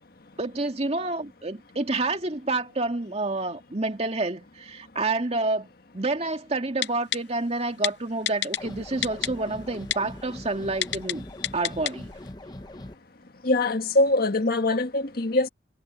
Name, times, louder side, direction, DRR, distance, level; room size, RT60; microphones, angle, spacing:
voice 1, 0.4-11.3 11.5-12.1, right 2 dB, 35° right, 2.2 m, -28 dB
Typing, 6.8-7.2 7.8-7.9 8.3-8.6 9.0-9.3 9.9-10.0 10.8-11.1 11.4-11.9 12.3-12.4, left 11 dB, 80° left, 0.7 m, -26 dB
sound 1, 8.6-12.9, left 1 dB, 25° left, 1.1 m, -41 dB
voice 2, 13.4-15.5, left 2 dB, 60° left, 1.6 m, -23 dB
head